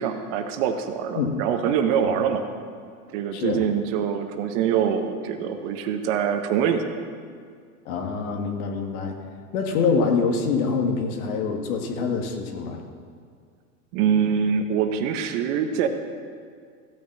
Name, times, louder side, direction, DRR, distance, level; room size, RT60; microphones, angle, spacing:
voice 1, 0.0-2.4 3.1-6.9 13.9-15.9, right 8 dB, 50° right, 6 dB, 1.2 m, -24 dB
voice 2, 3.3-3.7 7.9-9.1 9.5-12.8, left 5 dB, 60° left, 3 dB, 2.0 m, -25 dB
15.0 x 6.4 x 7.4 m, 2.1 s
supercardioid pair, 130°, 47 cm